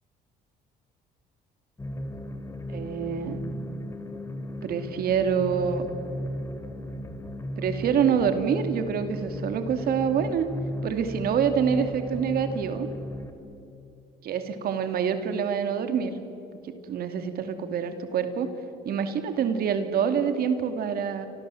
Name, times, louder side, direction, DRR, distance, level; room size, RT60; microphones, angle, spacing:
sound 1, 1.8-13.3, equal, 15° left, 3.2 m, -35 dB
voice 1, 2.7-3.5 4.6-5.9 7.6-10.5 10.8-12.9 14.2-16.2 16.6-18.5 18.8-21.3, right 7 dB, 65° right, 8 dB, 2.7 m, -26 dB
29.5 x 25.0 x 7.9 m, 2.8 s
cardioid pair, 110°, 17 cm